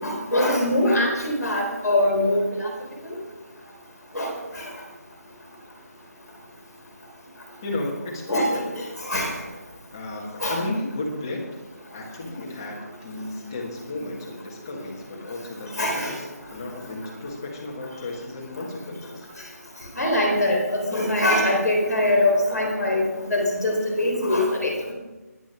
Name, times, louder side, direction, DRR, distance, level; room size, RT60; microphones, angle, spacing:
voice 1, 0.0-2.7 3.0-3.1 4.1-4.3 8.3-8.5 9.1-9.3 10.4-10.5 15.7-16.1 20.0-23.0 23.3-24.9, left 1 dB, ahead, -19 dB, 0.3 m, -22 dB
voice 2, 7.6-8.6 9.9-11.4 11.9-19.3, left 2 dB, 15° left, -2 dB, 1.6 m, -33 dB
10.5 x 9.9 x 6.0 m, 1.2 s
figure-of-eight pair, 180°, 9 cm